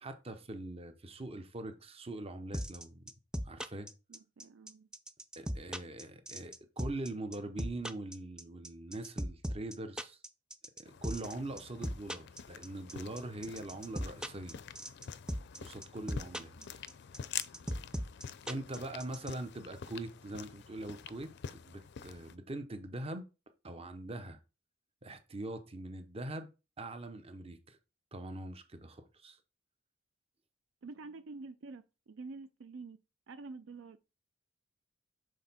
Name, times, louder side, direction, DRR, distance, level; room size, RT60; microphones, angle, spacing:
voice 1, 0.0-3.0 3.4-3.9 5.4-10.2 10.8-14.6 15.6-16.8 18.5-23.3 23.6-24.4 25.0-26.5 26.8-27.8 28.1-29.4, right 2 dB, 30° right, 0.8 m, -42 dB
sound 1, 2.5-19.3, equal, 5° right, 0.4 m, -37 dB
voice 2, 4.1-4.9 16.6-16.7 30.8-33.0 33.3-34.0, right 3 dB, 70° right, 0.4 m, -48 dB
sound 2, 10.9-22.4, left 8 dB, 60° left, 0.4 m, -47 dB
6.4 x 3.8 x 4.2 m
head